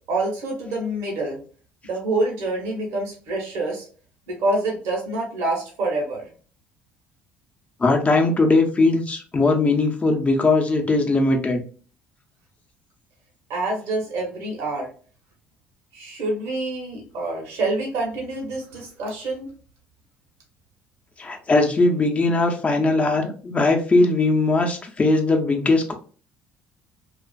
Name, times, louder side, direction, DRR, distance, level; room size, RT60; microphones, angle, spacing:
voice 1, 0.1-1.4 1.8-3.9 4.3-6.3 13.5-14.9 15.9-19.5, right 2 dB, 70° right, -1 dB, 1.0 m, -26 dB
voice 2, 7.8-11.6 21.2-25.9, left 2 dB, 25° left, 3 dB, 0.7 m, -19 dB
2.4 x 2.4 x 2.3 m, 0.39 s
hypercardioid pair, 60°, 5 cm